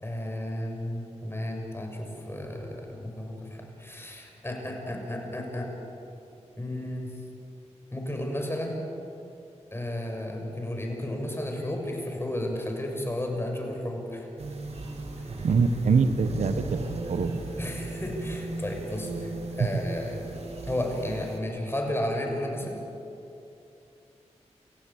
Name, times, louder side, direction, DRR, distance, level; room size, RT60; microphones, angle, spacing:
voice 1, 0.0-5.7 6.6-7.1 7.9-8.8 9.7-14.3 17.6-22.8, left 1 dB, 20° left, 1 dB, 6.6 m, -33 dB
sound 1, 14.4-21.4, right 2 dB, 60° right, 3.3 m, -34 dB
voice 2, 15.4-16.8 17.1-17.3 19.6-19.8, right 5 dB, 85° right, 10 dB, 1.2 m, -24 dB
29.0 x 15.5 x 8.7 m, 2.7 s
cardioid pair, 60°, 12 cm